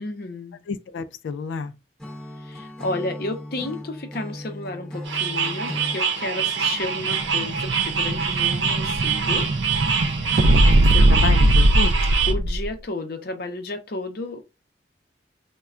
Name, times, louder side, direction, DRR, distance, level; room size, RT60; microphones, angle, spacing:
voice 1, 0.0-0.6 2.4-9.5 12.3-14.4, left 2 dB, 55° left, 0.7 m, -32 dB
voice 2, 0.7-1.7 10.6-11.9, left 4 dB, 90° left, 0.3 m, -30 dB
Acoustic guitar / Strum, 2.0-6.1, left 1 dB, 5° left, 0.8 m, -36 dB
sound 1, 5.0-12.3, right 6 dB, 80° right, 0.7 m, -25 dB
Explosion, 6.6-12.7, right 1 dB, 45° right, 0.3 m, -20 dB
4.2 x 2.2 x 2.4 m
head